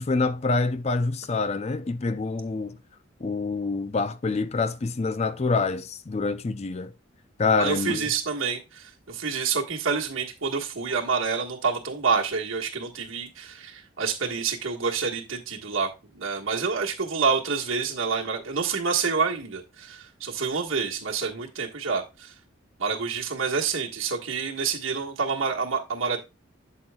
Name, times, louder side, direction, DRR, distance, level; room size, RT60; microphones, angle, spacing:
voice 1, 0.0-2.8 3.2-6.9 7.4-8.0, left 3 dB, 35° left, 0.4 m, -26 dB
voice 2, 7.6-15.9 16.1-22.3 22.8-26.2, right 5 dB, 85° right, 1.5 m, -28 dB
8.4 x 7.8 x 2.3 m
head